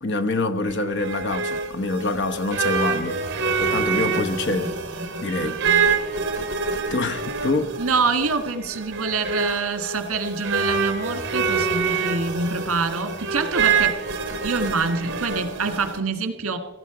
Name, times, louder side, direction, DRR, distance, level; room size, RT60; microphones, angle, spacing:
voice 1, 0.0-3.2 3.6-4.8 5.2-5.6 6.9-7.8, left 3 dB, 55° left, 0.9 m, -25 dB
sound 1, 0.7-16.0, right 5 dB, 55° right, 1.9 m, -26 dB
voice 2, 5.4-5.8 7.8-14.0 14.4-16.6, right 4 dB, 75° right, 1.7 m, -26 dB
17.0 x 15.0 x 4.9 m
head